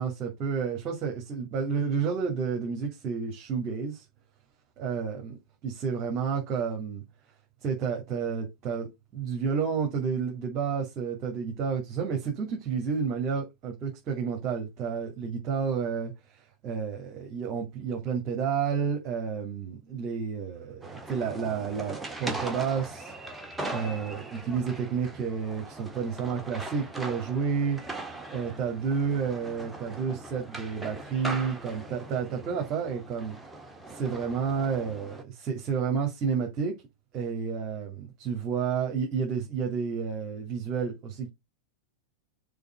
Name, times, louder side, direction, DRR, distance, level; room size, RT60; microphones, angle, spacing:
voice 1, 0.0-4.0 4.8-5.4 5.6-7.0 7.6-23.1 23.7-27.8 28.3-33.4 33.9-36.8 37.1-41.3, right 6 dB, 35° right, 2.5 m, -30 dB
sound 1, 20.8-35.2, right 2 dB, 10° right, 1.6 m, -40 dB
6.9 x 4.2 x 5.6 m
figure-of-eight pair, 90°, 0 cm